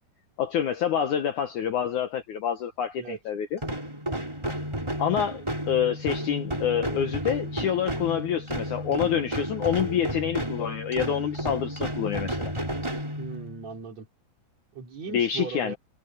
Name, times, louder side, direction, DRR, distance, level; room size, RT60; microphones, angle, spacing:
voice 1, 0.4-3.6 5.0-12.5 15.1-15.7, left 9 dB, 65° left, 2.1 m, -27 dB
sound 1, 3.6-13.7, equal, 5° right, 3.3 m, -32 dB
voice 2, 13.2-14.1 14.7-15.8, right 6 dB, 45° right, 4.3 m, -37 dB
omnidirectional pair, 4.5 m